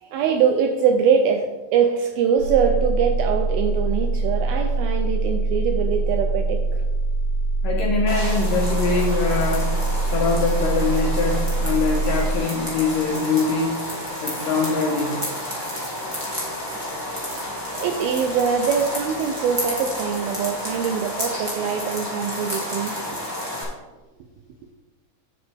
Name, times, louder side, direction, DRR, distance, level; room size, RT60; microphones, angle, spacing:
voice 1, 0.0-6.8 17.8-23.0, right 7 dB, 85° right, 4 dB, 2.2 m, -23 dB
sound 1, 2.4-12.4, right 3 dB, 55° right, 1.4 m, -23 dB
voice 2, 7.6-9.8 10.1-13.8 14.2-15.2, left 4 dB, 75° left, -2 dB, 2.0 m, -23 dB
sound 2, 8.1-23.6, left 1 dB, 20° right, 0.7 m, -30 dB
9.4 x 7.0 x 3.4 m, 1.1 s
omnidirectional pair, 4.8 m